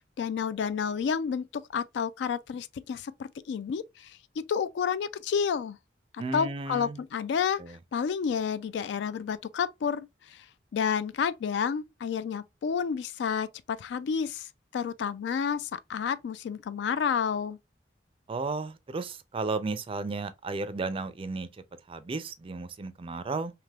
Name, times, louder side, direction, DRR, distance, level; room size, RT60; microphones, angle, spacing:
voice 1, 0.0-4.2 4.5-5.8 6.1-7.6 7.9-10.4 10.7-14.5 14.7-17.6, left 7 dB, 70° left, 0.3 m, -30 dB
voice 2, 6.2-7.0 7.6-7.7 18.3-21.5 21.9-23.5, right 3 dB, 30° right, 0.4 m, -33 dB
3.3 x 2.9 x 2.2 m
head